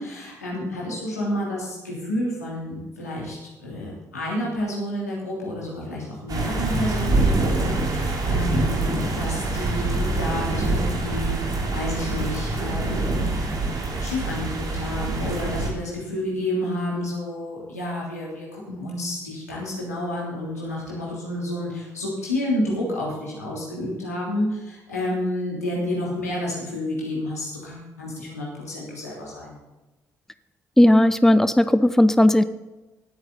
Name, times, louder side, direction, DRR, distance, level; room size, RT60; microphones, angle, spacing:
voice 1, 0.0-3.4 3.6-11.4 11.7-13.2 14.0-29.6, left 1 dB, 90° left, -5 dB, 3.1 m, -30 dB
sound 1, 6.3-15.7, right 2 dB, 50° right, 3.2 m, -25 dB
voice 2, 30.8-32.4, left 1 dB, 5° left, 13 dB, 0.6 m, -16 dB
18.5 x 8.9 x 4.0 m, 1.1 s
figure-of-eight pair, 45°, 8 cm